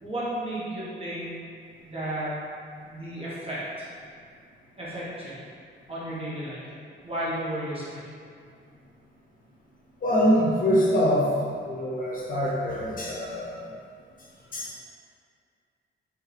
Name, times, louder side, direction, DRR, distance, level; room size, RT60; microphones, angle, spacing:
voice 1, 0.0-1.3 1.8-2.4 2.8-3.9 4.8-5.4 5.9-6.7 7.0-8.0, right 1 dB, 25° right, -9 dB, 1.4 m, -33 dB
voice 2, 10.0-11.3 11.6-13.6 14.5-14.8, equal, 40° left, -6 dB, 1.0 m, -24 dB
3.6 x 3.3 x 3.4 m, 2.3 s
cardioid pair, 85°, 21 cm